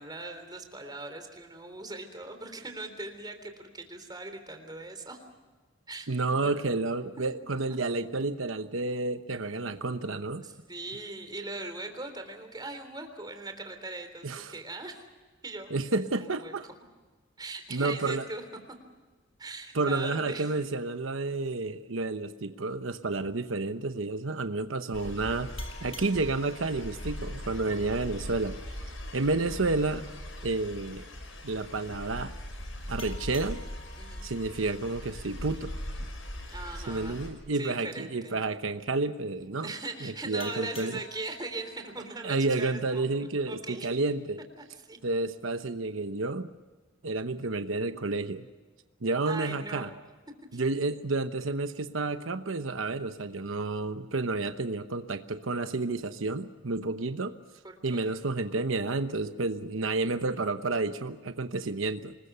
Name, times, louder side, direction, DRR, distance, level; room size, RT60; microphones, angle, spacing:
voice 1, 0.0-5.2 5.9-6.8 10.4-15.0 15.4-15.7 16.2-16.5 17.4-18.4 19.4-20.5 34.0-34.3 36.5-37.3 37.5-38.4 39.6-43.1 43.5-43.9 44.8-45.0 49.3-49.9 50.5-50.6 57.6-58.2, right 2 dB, 20° right, 6 dB, 3.5 m, -40 dB
voice 2, 6.1-10.4 14.2-14.5 15.7-16.7 17.7-18.2 19.7-25.5 25.8-28.6 29.1-30.1 30.4-31.1 31.4-32.3 32.9-33.6 34.2-35.7 36.9-39.7 40.0-41.0 42.2-44.4 45.0-46.5 47.0-48.5 49.0-49.9 50.5-57.3 57.8-62.1, right 3 dB, 90° right, 9 dB, 1.0 m, -30 dB
sound 1, 24.9-37.3, equal, 85° left, 5.8 m, -40 dB
sound 2, 25.6-28.8 33.0-36.2 40.4-43.3, left 2 dB, 30° left, 3.2 m, -51 dB
26.5 x 21.0 x 6.9 m, 1.3 s
head